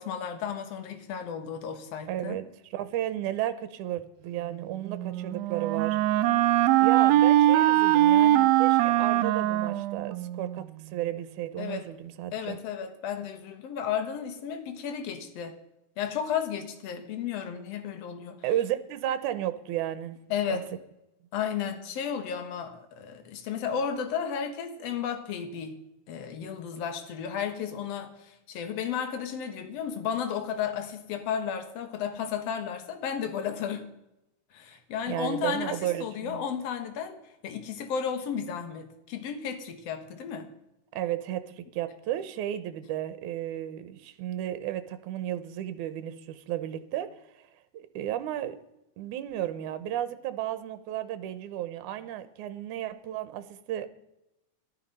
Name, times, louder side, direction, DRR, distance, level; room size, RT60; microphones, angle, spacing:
voice 1, 0.0-2.4 11.6-11.9 12.3-15.6 16.0-18.4 20.3-20.7 21.3-25.8 26.1-33.9 34.5-40.5, left 7 dB, 55° left, 8 dB, 2.2 m, -33 dB
voice 2, 2.1-6.0 6.8-12.6 18.4-20.2 20.5-20.6 35.1-36.4 41.0-47.5 47.7-48.6 49.0-53.9, right 12 dB, 70° right, 12 dB, 2.2 m, -33 dB
Wind instrument woodwind instrument, 4.8-10.7, right 13 dB, 85° right, 1.5 m, -22 dB
14.5 x 12.5 x 5.4 m, 0.89 s
omnidirectional pair, 3.8 m